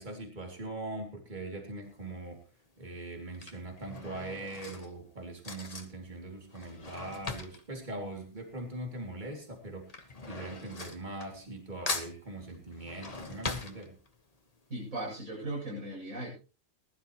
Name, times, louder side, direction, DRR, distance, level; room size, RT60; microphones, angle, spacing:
voice 1, 0.0-2.4 2.8-14.0, right 2 dB, 35° right, 2 dB, 3.0 m, -41 dB
Drawer open or close / Cutlery silverware, 1.9-2.2 3.1-9.0 9.2-11.6 11.9-14.4 14.8-14.9 15.1-15.2, left 3 dB, 30° left, 1.4 m, -41 dB
voice 2, 14.7-16.3, right 1 dB, 85° right, -3 dB, 8.4 m, -37 dB
20.0 x 12.0 x 3.1 m, 0.33 s
omnidirectional pair, 1.4 m